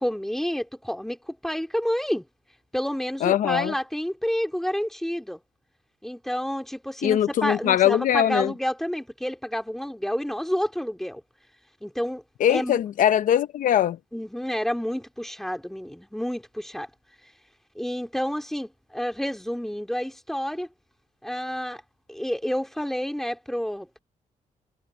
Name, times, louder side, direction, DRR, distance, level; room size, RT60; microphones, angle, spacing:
voice 1, 0.0-2.2 2.7-5.4 6.0-11.2 11.8-12.2 12.5-12.8 14.1-16.9 17.7-20.7 21.2-21.8 22.1-24.0, equal, ahead, 2.8 m, -29 dB
voice 2, 3.2-3.7 7.0-8.5 12.4-14.0, left 10 dB, 80° left, 0.6 m, -21 dB
cardioid pair, 115°, 14 cm